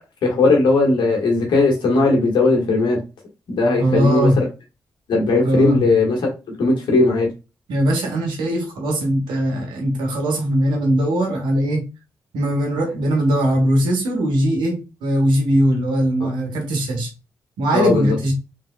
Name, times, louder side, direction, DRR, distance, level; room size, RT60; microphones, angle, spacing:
voice 1, 0.2-3.0 3.5-4.4 5.1-6.3 6.6-7.3 16.2-16.3 17.7-18.2, left 3 dB, 75° left, 1.4 m, -17 dB
voice 2, 3.8-4.4 5.4-5.8 7.7-11.9 12.3-17.1 17.6-18.3, right 1 dB, 85° right, 1.2 m, -20 dB
3.4 x 3.3 x 2.2 m
supercardioid pair, 40°, 8 cm